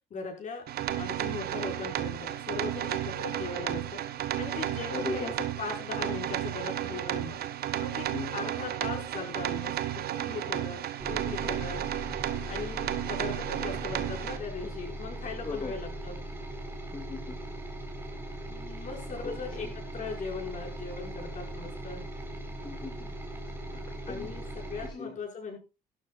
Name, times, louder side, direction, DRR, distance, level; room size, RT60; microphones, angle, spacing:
voice 1, 0.1-0.6 0.9-4.0 4.4-5.3 5.6-7.4 7.8-8.1 8.3-10.8 11.1-11.8 12.4-16.2 18.4-22.1 24.1-25.6, left 4 dB, 45° left, 1 dB, 6.0 m, -39 dB
sound 1, 0.7-14.4, right 12 dB, 65° right, 1.3 m, -33 dB
voice 2, 4.9-5.3 8.1-8.3 11.4-11.7 15.4-15.7 16.9-17.4 18.8-18.9 19.2-19.7 22.6-23.1 23.7-25.2, left 4 dB, 25° left, 2 dB, 2.3 m, -40 dB
sound 2, 11.0-24.9, right 1 dB, 15° right, 4.3 m, -39 dB
17.0 x 12.5 x 2.5 m, 0.27 s
cardioid pair, 110°, 17 cm